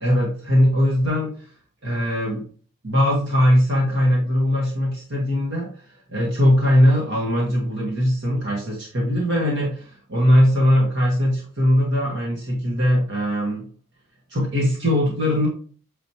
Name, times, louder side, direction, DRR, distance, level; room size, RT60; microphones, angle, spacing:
voice 1, 0.0-1.3 1.8-2.4 2.8-5.7 6.1-13.6 14.3-15.5, equal, 55° right, -3 dB, 1.9 m, -20 dB
9.2 x 4.1 x 3.1 m, 0.42 s
head